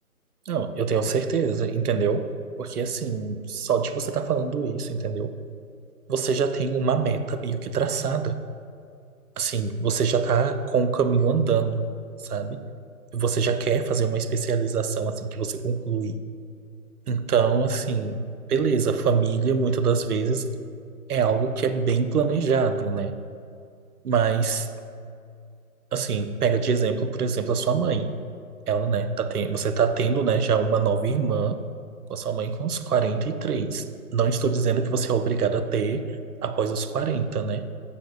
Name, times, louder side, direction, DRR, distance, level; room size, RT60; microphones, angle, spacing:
voice 1, 0.5-2.3 2.6-5.3 6.1-8.4 9.4-11.9 12.2-12.7 13.1-16.2 17.1-20.5 21.1-23.2 24.0-24.7 25.9-28.1 28.7-31.6 32.1-33.8 34.1-36.1 36.4-37.7, right 5 dB, 85° right, 10 dB, 0.6 m, -24 dB
7.1 x 6.6 x 2.3 m, 2.3 s
figure-of-eight pair, 145°, 44 cm